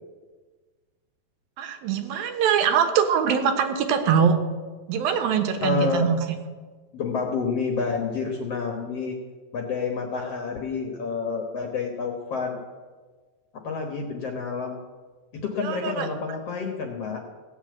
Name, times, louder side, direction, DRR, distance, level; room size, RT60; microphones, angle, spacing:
voice 1, 1.6-4.4 4.9-6.2 15.6-16.1, right 7 dB, 75° right, 7 dB, 2.8 m, -23 dB
voice 2, 5.6-6.1 6.9-9.2 9.5-12.6 13.5-14.8 15.3-17.2, left 5 dB, 60° left, 3 dB, 1.7 m, -29 dB
16.0 x 7.3 x 8.6 m, 1.4 s
omnidirectional pair, 4.3 m